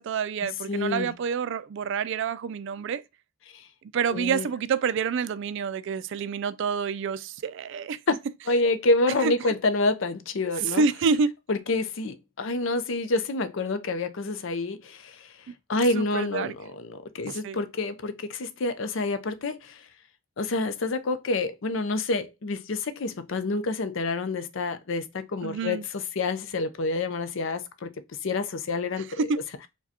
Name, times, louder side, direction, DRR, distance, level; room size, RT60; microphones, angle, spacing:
voice 1, 0.0-3.0 3.9-8.0 9.2-9.3 10.7-11.3 15.5-15.6 15.9-16.5 17.3-17.6 25.4-25.9 29.2-29.4, right 5 dB, 55° right, 0.3 m, -28 dB
voice 2, 0.7-1.1 3.5-3.7 4.1-4.5 8.5-10.8 11.5-15.3 15.7-19.9 20.4-29.3, left 2 dB, 60° left, 0.5 m, -28 dB
4.7 x 2.3 x 2.7 m
head